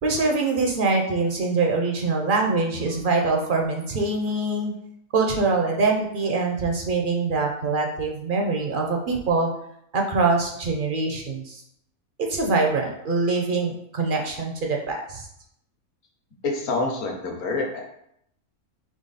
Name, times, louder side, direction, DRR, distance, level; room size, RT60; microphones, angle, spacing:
voice 1, 0.0-4.7 5.1-9.5 9.9-11.6 12.2-15.3, right 3 dB, 60° right, 1 dB, 0.5 m, -24 dB
voice 2, 16.4-17.8, left 3 dB, 60° left, 0 dB, 1.3 m, -27 dB
3.9 x 3.3 x 4.0 m, 0.74 s
omnidirectional pair, 1.6 m